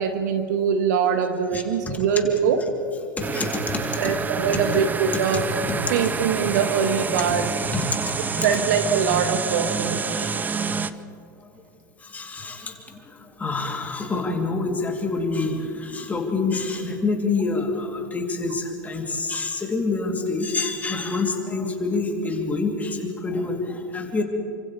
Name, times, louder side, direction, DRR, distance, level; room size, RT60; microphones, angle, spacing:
voice 1, 0.0-2.7 4.0-5.5 5.9-7.6 8.4-10.0, right 6 dB, 60° right, 7 dB, 1.7 m, -23 dB
voice 2, 3.2-4.1 5.6-5.7 8.3-8.5 10.1-10.3 12.0-24.2, left 3 dB, 15° left, 1 dB, 3.3 m, -27 dB
sound 1, 3.2-10.9, right 5 dB, 15° right, 0.7 m, -27 dB
29.5 x 26.0 x 3.4 m, 2.6 s
figure-of-eight pair, 90°, 11 cm